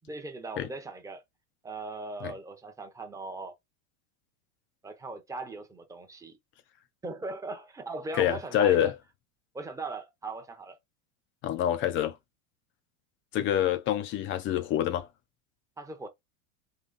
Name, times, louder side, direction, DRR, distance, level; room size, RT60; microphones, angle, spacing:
voice 1, 0.0-1.2 1.6-3.5 4.8-6.4 7.0-8.9 9.5-10.8 13.4-13.5 15.8-16.1, right 3 dB, 10° right, 0.6 m, -39 dB
voice 2, 8.1-8.9 11.4-12.1 13.3-15.1, left 11 dB, 30° left, 0.4 m, -26 dB
3.9 x 2.9 x 3.9 m
supercardioid pair, 135°, 43 cm